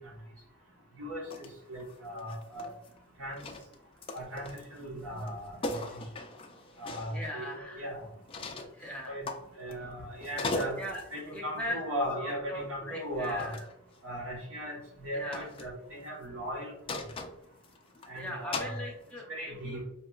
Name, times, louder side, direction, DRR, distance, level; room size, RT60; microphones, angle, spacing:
voice 1, 1.0-2.7 3.2-3.4 4.1-5.9 6.8-8.1 9.1-9.3 9.6-10.8 11.1-13.5 14.0-16.7 18.1-18.8 19.3-19.8, equal, 85° right, -2 dB, 1.3 m, -37 dB
sound 1, 1.3-1.5 1.8-3.0 3.3-4.8 5.2-5.3 5.6-7.2 8.3-8.8 9.3-9.9 10.2-11.1 12.3-12.5 13.2-13.7 15.3-15.7 16.9-18.1 18.5-18.8, left 2 dB, 25° left, 0.3 m, -38 dB
voice 2, 7.1-7.8 8.7-9.2 10.7-11.0 11.3-11.8 12.2-13.6 15.1-15.4 18.1-19.8, equal, 5° left, -2 dB, 0.7 m, -40 dB
5.2 x 2.9 x 2.3 m, 0.80 s
head